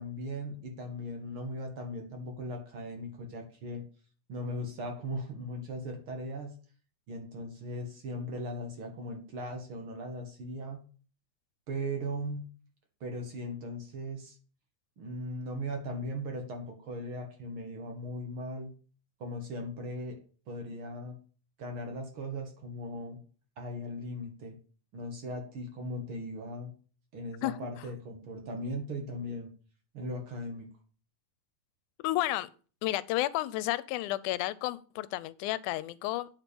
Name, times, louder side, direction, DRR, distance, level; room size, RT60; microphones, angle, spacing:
voice 1, 0.0-3.8 4.3-6.5 7.1-10.8 11.7-12.4 13.0-14.4 15.0-18.7 19.2-20.2 20.5-21.2 21.6-23.2 23.6-24.6 24.9-26.7 27.1-29.5 29.9-30.7, equal, 50° right, 3 dB, 1.9 m, -38 dB
voice 2, 32.0-32.5 32.8-36.3, left 16 dB, 90° left, 17 dB, 2.0 m, -31 dB
9.2 x 4.5 x 6.9 m, 0.40 s
omnidirectional pair, 3.5 m